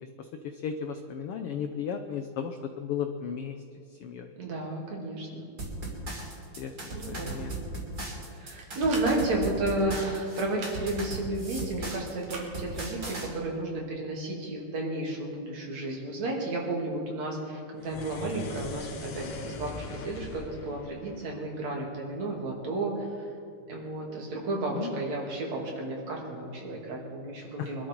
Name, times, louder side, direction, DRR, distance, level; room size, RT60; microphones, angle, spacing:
voice 1, 0.2-3.6 4.0-4.3 6.6-6.7 7.1-7.5 24.7-25.0 27.6-27.7, left 7 dB, 85° left, 7 dB, 1.3 m, -35 dB
voice 2, 4.4-5.5 6.9-7.5 8.3-23.3 23.7-27.9, right 2 dB, 60° right, -1 dB, 3.7 m, -32 dB
sound 1, 5.6-13.3, right 1 dB, 35° right, 3.3 m, -37 dB
sound 2, 8.6-9.1 10.5-10.8 12.2-12.5, right 3 dB, 75° right, 3.9 m, -40 dB
sound 3, 17.8-22.2, left 3 dB, 60° left, 2.2 m, -41 dB
24.0 x 12.5 x 4.6 m, 2.4 s
omnidirectional pair, 3.5 m